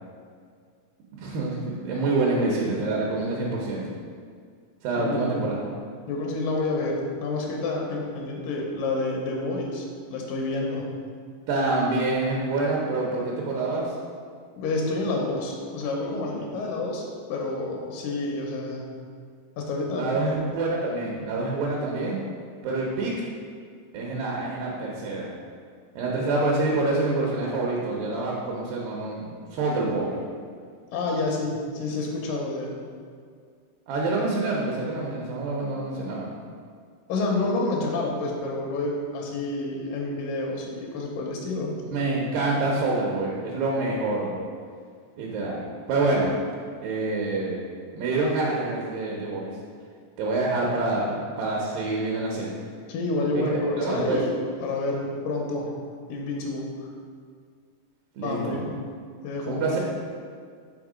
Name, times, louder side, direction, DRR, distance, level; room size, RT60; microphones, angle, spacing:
voice 1, 1.2-3.8 4.8-5.6 11.5-13.9 19.9-22.2 22.6-23.1 23.9-25.3 26.0-30.2 33.9-36.3 41.9-44.3 45.2-46.3 46.8-47.6 47.9-49.5 50.2-52.6 53.3-54.2 58.2-58.6 59.5-59.8, right 2 dB, 85° right, -3 dB, 2.5 m, -26 dB
voice 2, 5.0-5.6 6.1-10.9 14.6-18.8 19.6-20.2 30.9-32.7 37.1-41.7 52.9-54.3 54.6-55.7 56.1-56.7 58.2-58.7 59.2-59.8, left 2 dB, 85° left, 0 dB, 2.3 m, -29 dB
5.8 x 3.5 x 4.9 m, 2.1 s
omnidirectional pair, 3.9 m